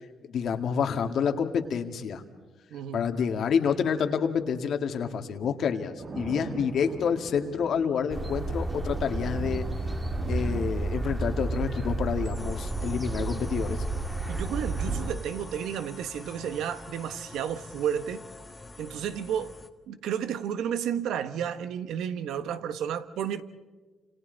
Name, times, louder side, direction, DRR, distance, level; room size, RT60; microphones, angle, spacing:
voice 1, 0.3-2.2 2.9-9.6 10.3-13.8 14.9-15.0, left 7 dB, 65° left, 2.0 m, -28 dB
voice 2, 2.7-3.1 14.3-18.3 18.8-19.6 19.9-23.4, right 9 dB, 80° right, 1.3 m, -32 dB
sound 1, 6.0-13.4, right 4 dB, 45° right, 1.9 m, -43 dB
sound 2, 8.1-15.1, right 2 dB, 20° right, 2.3 m, -31 dB
sound 3, 12.3-19.7, left 3 dB, 20° left, 1.7 m, -46 dB
30.0 x 27.5 x 4.0 m
cardioid pair, 90°, 0 cm